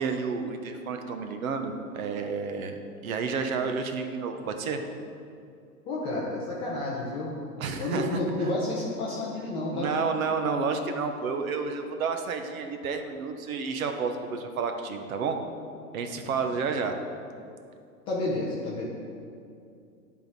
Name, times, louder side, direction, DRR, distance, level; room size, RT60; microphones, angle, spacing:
voice 1, 0.0-4.8 7.6-8.2 9.7-15.4 15.9-16.9, right 5 dB, 60° right, 6 dB, 0.9 m, -30 dB
voice 2, 5.8-7.3 7.8-9.9 16.3-16.5 18.1-18.9, left 2 dB, 15° left, -5 dB, 0.4 m, -30 dB
10.5 x 3.6 x 4.6 m, 2.5 s
hypercardioid pair, 125°, 47 cm